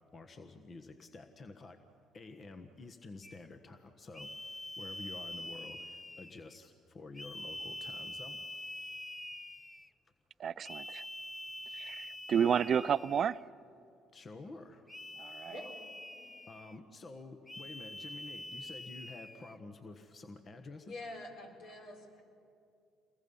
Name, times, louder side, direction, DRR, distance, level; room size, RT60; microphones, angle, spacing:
voice 1, 0.1-1.8 2.1-4.3 4.8-8.4 14.1-14.9 16.5-20.9, left 3 dB, 40° left, 7 dB, 1.4 m, -50 dB
sound 1, 3.2-3.5 4.1-6.6 7.1-9.9 10.6-13.4 14.9-16.8 17.5-19.6, left 1 dB, 15° left, 0.8 m, -45 dB
voice 2, 10.4-11.1 11.7-13.4 15.2-15.6, right 8 dB, 50° right, 18 dB, 0.4 m, -31 dB
voice 3, 15.5-15.8 16.1-16.3 20.8-22.2, left 1 dB, 70° left, 0 dB, 4.3 m, -46 dB
28.5 x 21.5 x 5.6 m, 2.5 s
hypercardioid pair, 60°, 0 cm